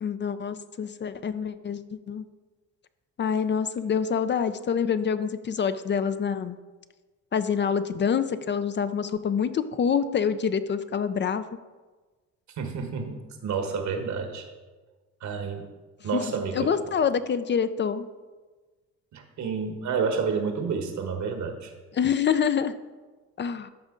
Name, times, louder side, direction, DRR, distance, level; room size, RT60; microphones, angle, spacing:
voice 1, 0.0-2.2 3.2-6.6 7.3-11.4 16.1-16.2 16.5-18.1 21.9-22.7 23.4-23.7, left 7 dB, 40° left, 12 dB, 0.4 m, -26 dB
voice 2, 12.6-14.5 15.2-15.7 16.0-16.7 19.1-21.7, right 5 dB, 70° right, 5 dB, 1.4 m, -30 dB
12.5 x 5.0 x 3.8 m, 1.3 s
cardioid pair, 90°, 30 cm